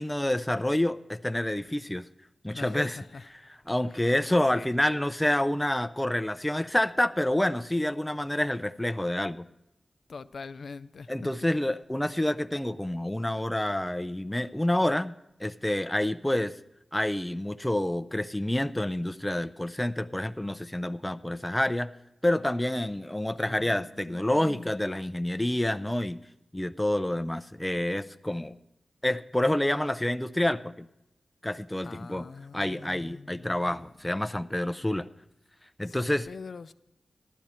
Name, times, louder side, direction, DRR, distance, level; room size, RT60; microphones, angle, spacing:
voice 1, 0.0-2.1 2.4-3.0 3.7-9.5 11.1-15.1 15.4-16.5 16.9-21.9 22.2-26.2 26.5-28.6 29.0-30.9 31.4-32.3 32.5-35.1 35.8-36.3, left 1 dB, 15° left, 0.5 m, -28 dB
voice 2, 2.5-3.3 3.9-4.1 4.5-4.7 10.1-11.3 23.4-24.7 31.8-33.9 35.8-36.7, left 4 dB, 80° left, 0.4 m, -44 dB
14.0 x 12.0 x 4.4 m
cardioid pair, 40°, 0 cm